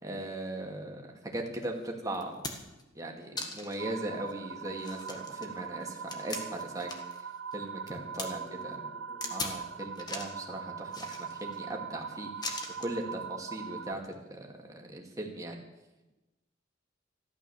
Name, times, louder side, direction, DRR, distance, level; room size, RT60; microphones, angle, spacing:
voice 1, 0.0-2.4 2.9-6.9 7.5-8.4 9.3-15.6, right 1 dB, 20° right, 0 dB, 2.4 m, -39 dB
sound 1, 1.6-1.7 2.1-2.8 3.4-3.8 4.3-4.4 4.8-7.2 7.5-8.3 9.2-9.6 10.0-10.4 10.9-11.6 12.4-13.0 14.0-14.2, left 3 dB, 20° left, 1.7 m, -40 dB
sound 2, 3.8-13.9, right 6 dB, 65° right, 0.5 m, -41 dB
voice 2, 8.0-9.5, right 1 dB, 65° left, -2 dB, 7.2 m, -53 dB
14.0 x 12.0 x 7.2 m, 1.0 s
head